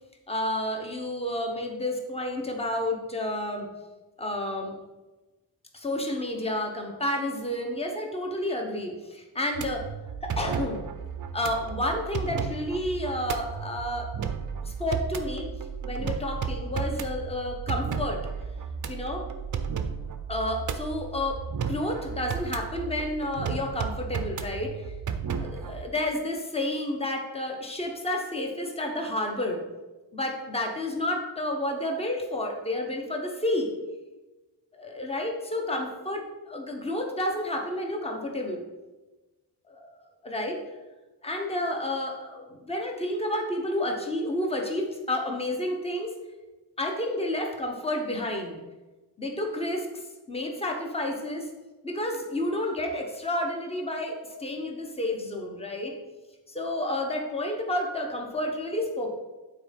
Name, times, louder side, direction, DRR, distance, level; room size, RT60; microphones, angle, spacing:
voice 1, 0.3-3.7 4.2-4.8 5.7-9.9 10.2-10.8 11.3-14.1 14.6-15.5 15.8-18.2 18.9-19.2 20.3-21.4 21.7-24.8 25.4-29.6 30.1-33.7 34.7-38.6 39.7-39.9 40.2-40.6 41.2-46.1 46.8-48.5 49.2-50.0 50.3-51.5 51.8-55.9 56.5-59.1, left 1 dB, 15° left, 1 dB, 1.1 m, -30 dB
sound 1, 9.5-25.9, right 6 dB, 45° right, 0.6 m, -34 dB
8.9 x 4.2 x 5.3 m, 1.1 s
wide cardioid pair, 150°, 43 cm